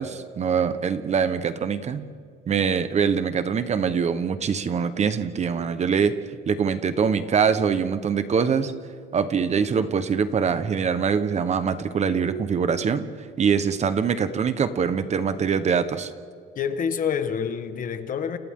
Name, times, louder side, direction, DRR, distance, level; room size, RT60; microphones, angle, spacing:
voice 1, 0.0-2.1 2.5-6.1 6.5-8.7 9.1-13.1 13.4-16.1, right 6 dB, 35° right, 10 dB, 1.2 m, -23 dB
voice 2, 16.5-18.4, left 7 dB, 40° left, 9 dB, 1.5 m, -27 dB
30.0 x 28.0 x 3.8 m, 2.1 s
cardioid pair, 150°, 20 cm